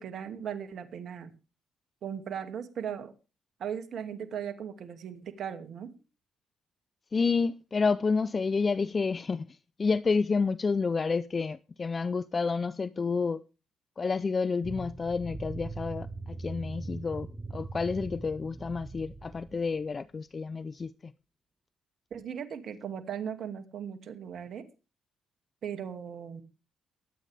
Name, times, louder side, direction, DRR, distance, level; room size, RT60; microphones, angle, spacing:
voice 1, 0.0-1.3 2.0-3.1 3.6-5.9 22.1-24.6 25.6-26.4, right 8 dB, 65° right, 2.4 m, -38 dB
voice 2, 7.1-13.4 14.0-21.1, left 4 dB, 40° left, 0.6 m, -29 dB
sound 1, 14.6-19.8, right 3 dB, 20° right, 1.2 m, -40 dB
23.5 x 9.1 x 3.5 m
supercardioid pair, 65°, 0 cm